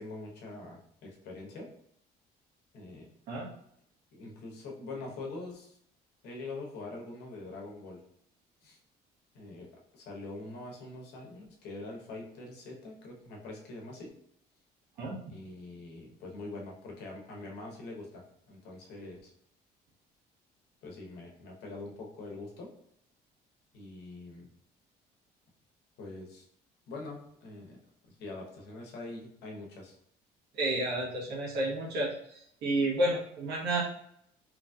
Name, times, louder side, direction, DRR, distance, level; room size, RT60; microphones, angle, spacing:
voice 1, 0.0-1.7 2.7-3.1 4.1-5.8 6.2-8.0 8.6-8.8 9.3-14.1 15.3-19.3 20.8-22.7 23.7-24.5 26.0-26.5 26.9-27.8 28.0-30.0, left 2 dB, 80° left, -1 dB, 0.9 m, -44 dB
voice 2, 30.5-33.8, right 1 dB, 80° right, -4 dB, 1.1 m, -31 dB
3.0 x 2.6 x 2.3 m, 0.71 s
cardioid pair, 110°, 17 cm